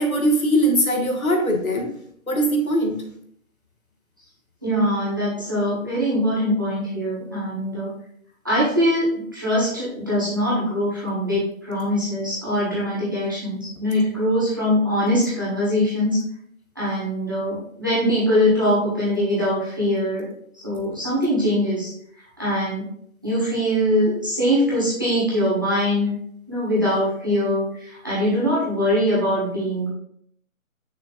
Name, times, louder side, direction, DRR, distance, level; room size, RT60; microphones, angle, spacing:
voice 1, 0.0-1.9 2.3-3.0, right 1 dB, 80° left, 2 dB, 1.8 m, -21 dB
voice 2, 4.6-7.9 8.4-16.2 16.7-20.2 20.6-21.9 22.4-22.8 23.2-26.1 26.5-29.9, equal, 15° right, -10 dB, 1.3 m, -22 dB
6.9 x 6.3 x 2.5 m, 0.67 s
figure-of-eight pair, 175°, 42 cm